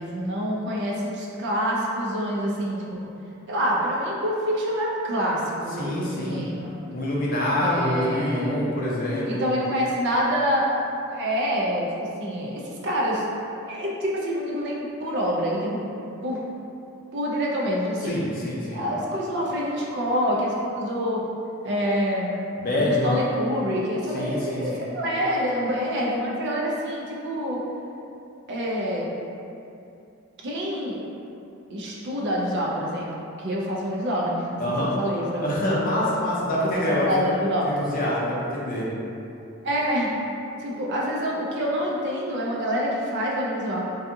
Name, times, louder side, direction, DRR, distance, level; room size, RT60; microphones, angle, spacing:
voice 1, 0.0-3.0 3.5-6.8 7.6-8.7 9.3-13.2 13.7-15.8 16.2-16.4 17.1-18.2 18.7-21.2 21.6-22.3 22.8-27.6 28.5-29.1 30.4-31.0 31.7-33.1 33.4-34.6 35.0-35.5 36.6-37.7 39.6-40.2 40.6-43.8, equal, 55° right, -3 dB, 0.4 m, -26 dB
voice 2, 5.8-6.4 6.9-9.5 18.1-18.9 22.6-23.2 24.1-24.8 34.6-34.9 35.4-37.1 37.8-38.9, left 1 dB, 40° left, -5 dB, 0.5 m, -25 dB
2.6 x 2.3 x 2.5 m, 2.7 s
head